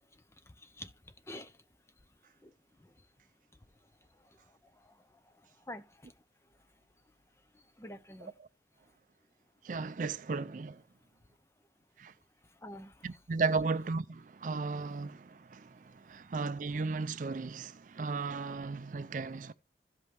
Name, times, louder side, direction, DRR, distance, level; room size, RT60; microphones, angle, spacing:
voice 1, 0.5-0.9 1.3-1.5 2.4-2.5 2.8-2.9 4.2-4.4 4.8-5.0 5.7-6.1 7.8-8.3 12.6-13.1, left 1 dB, 15° left, 0.5 m, -47 dB
voice 2, 9.6-10.8 12.0-12.1 13.0-19.5, right 4 dB, 45° right, 0.4 m, -35 dB
15.5 x 5.4 x 3.0 m
head